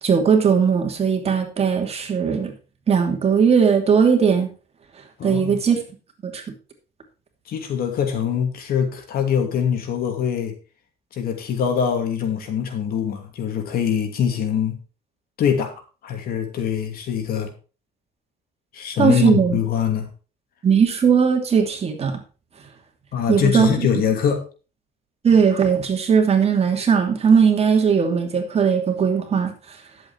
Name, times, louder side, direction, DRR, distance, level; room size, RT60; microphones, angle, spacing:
voice 1, 0.0-2.5 2.9-4.5 5.2-5.8 6.2-6.4 19.0-19.6 20.6-22.2 23.3-23.9 25.2-29.5, right 6 dB, 35° right, 4 dB, 2.7 m, -18 dB
voice 2, 5.2-5.6 7.5-10.5 11.1-14.8 15.4-15.7 16.0-17.5 18.7-20.1 23.1-24.4, left 8 dB, 60° left, 5 dB, 2.7 m, -23 dB
11.0 x 7.8 x 4.5 m, 0.34 s
cardioid pair, 110°, 17 cm